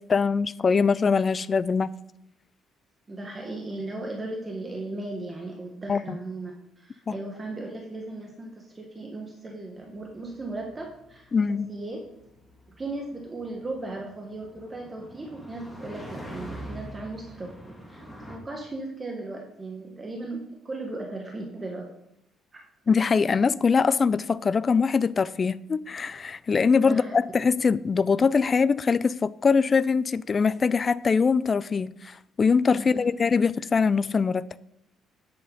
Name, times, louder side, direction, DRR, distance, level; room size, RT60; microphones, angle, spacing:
voice 1, 0.0-1.9 5.9-6.0 11.3-11.7 22.9-34.6, left 5 dB, 30° left, 0.3 m, -23 dB
voice 2, 3.1-12.0 12.7-21.9 22.5-22.6 26.8-27.1 32.8-33.0, right 2 dB, 20° right, 1.4 m, -37 dB
sound 1, 9.9-18.4, equal, 5° left, 2.1 m, -44 dB
10.0 x 7.9 x 3.9 m
cardioid pair, 130°, 0 cm